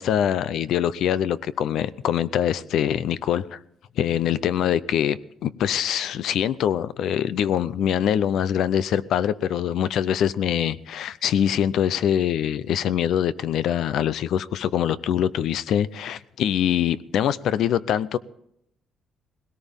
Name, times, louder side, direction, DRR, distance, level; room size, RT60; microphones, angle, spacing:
voice 1, 0.0-3.6 4.0-18.2, left 9 dB, 70° left, 17 dB, 0.6 m, -24 dB
20.0 x 17.5 x 3.6 m, 0.77 s
cardioid pair, 130°, 0 cm